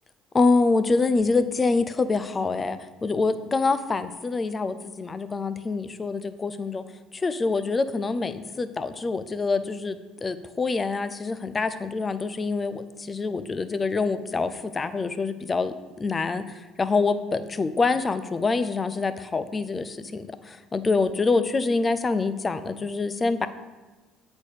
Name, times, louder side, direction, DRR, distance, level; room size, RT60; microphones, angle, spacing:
voice 1, 0.3-6.8 7.1-23.5, left 3 dB, 30° left, 12 dB, 0.5 m, -26 dB
8.2 x 4.1 x 5.0 m, 1.2 s
hypercardioid pair, 65°, 0 cm